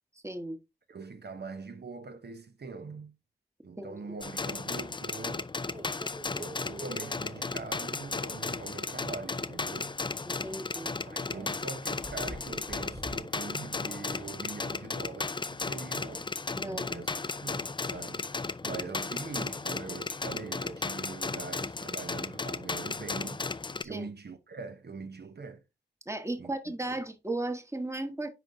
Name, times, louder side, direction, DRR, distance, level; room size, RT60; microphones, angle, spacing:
voice 1, 0.2-0.6 3.8-4.0 10.2-11.0 16.5-16.9 18.6-18.7 23.8-24.0 26.1-28.3, right 2 dB, 15° right, 1.1 m, -36 dB
voice 2, 0.9-3.2 3.6-5.5 6.3-10.0 11.1-16.3 16.6-17.1 17.4-23.4 23.8-25.6 26.4-27.0, right 4 dB, 60° right, 0.8 m, -43 dB
sound 1, 4.2-23.8, left 3 dB, 25° left, 0.4 m, -35 dB
Microwave oven, 5.7-13.2, right 1 dB, 45° right, 2.3 m, -49 dB
10.0 x 3.9 x 2.6 m
wide cardioid pair, 55°, 19 cm